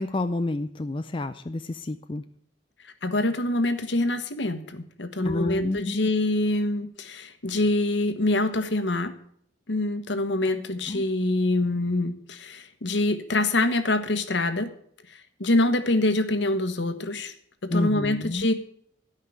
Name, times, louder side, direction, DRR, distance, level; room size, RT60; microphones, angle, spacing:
voice 1, 0.0-2.2 5.2-6.1 10.9-11.0 17.7-18.5, left 2 dB, 25° left, 9 dB, 0.4 m, -29 dB
voice 2, 2.8-9.1 9.7-14.7 15.1-17.3 17.6-18.5, left 2 dB, 70° left, 10 dB, 1.3 m, -25 dB
13.0 x 5.7 x 8.4 m, 0.66 s
head